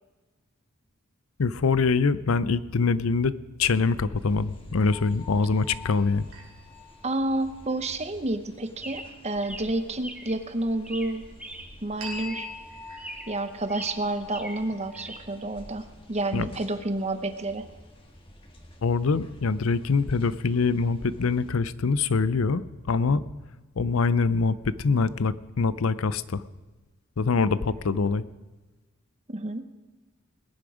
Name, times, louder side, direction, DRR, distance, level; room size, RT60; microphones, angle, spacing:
voice 1, 1.4-6.3 16.3-16.5 18.8-22.6 22.9-23.2 23.8-26.4 27.2-28.2, left 4 dB, 85° left, 17 dB, 0.6 m, -24 dB
sound 1, 4.2-21.6, left 1 dB, 25° left, 1.7 m, -52 dB
sound 2, 4.9-7.7 12.0-15.6, left 2 dB, 70° right, 3.1 m, -44 dB
voice 2, 7.0-11.2 11.8-12.5 13.3-17.6 29.3-29.7, right 2 dB, 30° right, 10 dB, 1.0 m, -29 dB
Chirp tweet, 8.8-10.4 10.8-11.8 12.1-12.6 13.0-13.4 13.7-15.2, right 1 dB, 5° right, 1.1 m, -42 dB
20.0 x 10.5 x 5.0 m, 1.2 s
head